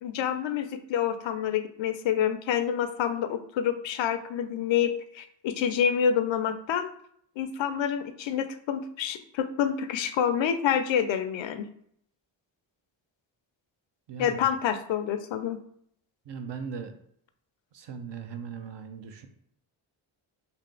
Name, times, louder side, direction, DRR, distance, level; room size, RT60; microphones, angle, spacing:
voice 1, 0.0-6.9 7.4-11.7 14.2-15.6, left 8 dB, 65° left, 10 dB, 0.6 m, -27 dB
voice 2, 14.1-14.4 16.3-16.9 17.7-19.3, right 6 dB, 55° right, 7 dB, 0.7 m, -38 dB
3.4 x 2.7 x 3.7 m, 0.67 s
supercardioid pair, 50°, 50 cm